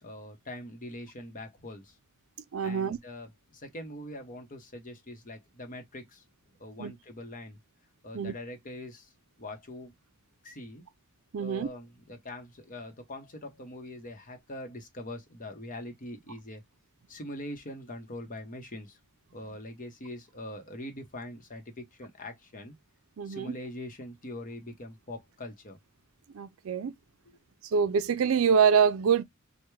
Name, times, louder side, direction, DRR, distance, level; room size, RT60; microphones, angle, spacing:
voice 1, 0.0-2.0 2.6-6.2 6.6-7.6 8.0-9.1 9.4-9.9 10.4-10.8 11.4-16.6 17.1-19.0 19.3-22.7 23.2-25.8, left 1 dB, 40° left, 0.9 m, -43 dB
voice 2, 2.5-3.0 6.8-6.9 8.1-8.3 11.3-11.7 23.2-23.5 26.3-26.9 27.7-29.2, right 6 dB, 70° right, 0.4 m, -25 dB
3.4 x 2.2 x 3.0 m
head